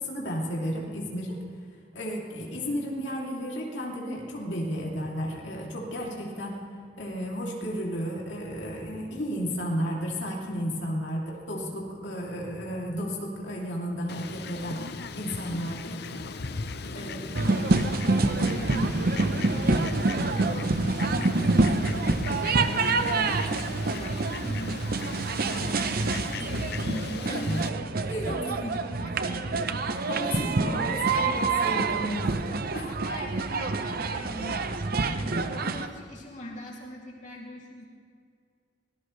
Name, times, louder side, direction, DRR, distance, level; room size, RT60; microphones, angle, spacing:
voice 1, 0.0-1.4 1.9-6.6 7.0-16.0 16.9-17.3 19.2-19.4 27.2-27.6 28.0-28.4 30.1-32.9, equal, 80° left, -2 dB, 2.9 m, -33 dB
Fowl, 14.1-27.7, left 4 dB, 60° left, 0.7 m, -38 dB
voice 2, 16.8-30.1 30.5-30.9 32.9-37.9, equal, 45° left, -3 dB, 2.8 m, -41 dB
sound 1, 17.3-35.9, right 3 dB, 55° right, 0.8 m, -27 dB
24.0 x 18.5 x 3.3 m, 2.2 s
head